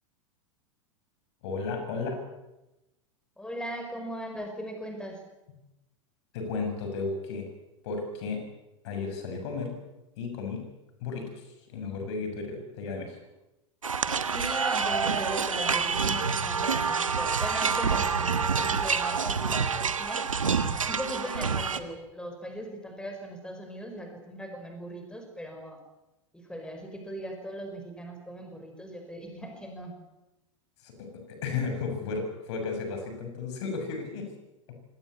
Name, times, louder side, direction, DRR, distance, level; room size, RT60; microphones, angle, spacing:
voice 1, 1.4-2.2 6.3-7.5 7.8-8.4 8.8-9.7 10.2-10.6 11.0-13.2 30.8-34.3, left 4 dB, 55° left, 5 dB, 6.9 m, -34 dB
voice 2, 3.4-5.2 14.3-20.3 20.8-25.8 26.3-29.9, equal, 5° left, 4 dB, 5.1 m, -39 dB
sound 1, 13.8-21.8, right 5 dB, 85° right, 1.5 m, -27 dB
25.0 x 18.5 x 8.3 m, 0.95 s
figure-of-eight pair, 90°, 17 cm